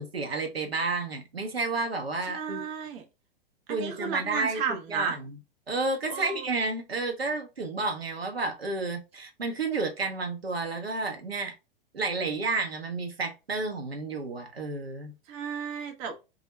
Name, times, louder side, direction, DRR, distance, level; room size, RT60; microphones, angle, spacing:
voice 1, 0.0-2.6 3.7-4.6 4.9-5.3 5.7-11.5 11.9-15.1, right 3 dB, 80° right, 0.7 m, -31 dB
voice 2, 2.2-3.0 3.7-5.2 6.1-6.5 15.3-16.2, right 6 dB, 25° right, 0.5 m, -33 dB
2.4 x 2.0 x 2.9 m
figure-of-eight pair, 100°, 30 cm